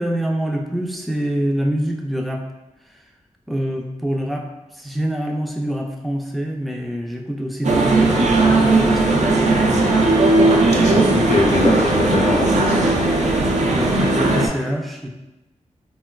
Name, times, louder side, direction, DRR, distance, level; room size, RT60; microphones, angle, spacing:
voice 1, 0.0-2.4 3.5-4.5 4.8-9.2 13.7-15.1, equal, ahead, 1 dB, 0.3 m, -25 dB
sound 1, 7.6-14.5, right 2 dB, 70° right, 0.4 m, -17 dB
voice 2, 10.8-12.9, left 2 dB, 60° left, -1 dB, 0.6 m, -22 dB
3.8 x 2.1 x 2.2 m, 1.0 s
wide cardioid pair, 90°, 13 cm